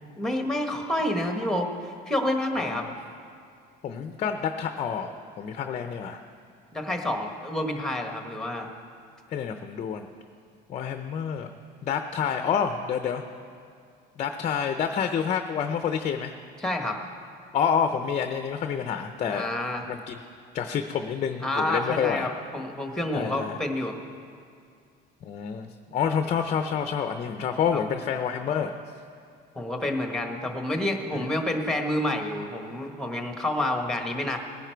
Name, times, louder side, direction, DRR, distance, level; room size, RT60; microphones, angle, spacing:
voice 1, 0.2-2.9 6.7-8.7 16.6-17.0 19.3-19.8 21.4-23.9 27.7-28.0 29.5-34.4, left 1 dB, 5° left, 4 dB, 1.2 m, -28 dB
voice 2, 2.6-2.9 3.8-6.2 9.3-10.1 10.7-11.5 11.8-13.2 14.2-16.3 17.5-19.5 19.8-20.2 20.5-22.3 23.1-23.5 25.2-28.7 31.1-31.2, left 7 dB, 35° left, 7 dB, 0.6 m, -28 dB
19.0 x 11.0 x 4.6 m, 2.4 s
cardioid pair, 150°, 20 cm